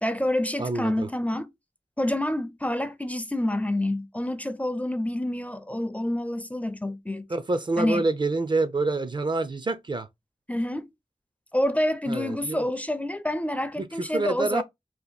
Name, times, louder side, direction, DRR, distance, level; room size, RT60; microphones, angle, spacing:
voice 1, 0.0-1.5 2.0-7.3 7.8-8.0 10.5-10.9 11.5-14.6, left 1 dB, 10° left, 0.4 m, -28 dB
voice 2, 0.6-1.1 7.3-10.1 12.1-12.6 13.8-13.9 14.1-14.6, right 3 dB, 40° right, 0.4 m, -27 dB
2.8 x 2.5 x 4.0 m
wide cardioid pair, 80°, 11 cm